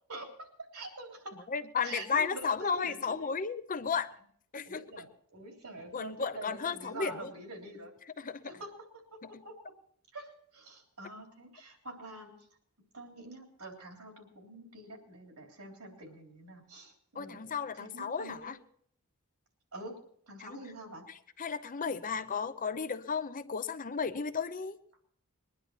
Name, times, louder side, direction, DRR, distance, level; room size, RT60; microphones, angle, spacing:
voice 1, 0.1-1.5 1.8-3.3 4.7-7.9 8.4-8.7 9.1-9.7 10.1-12.3 12.9-18.5 19.7-20.0 20.3-21.1, right 2 dB, 90° right, 2 dB, 3.5 m, -46 dB
voice 2, 1.5-4.1 4.5-4.8 5.9-7.3 8.2-8.5 9.2-9.4 17.1-18.6 20.4-20.6 21.4-24.8, left 5 dB, 40° left, 12 dB, 0.7 m, -34 dB
21.5 x 10.5 x 4.4 m, 0.62 s
head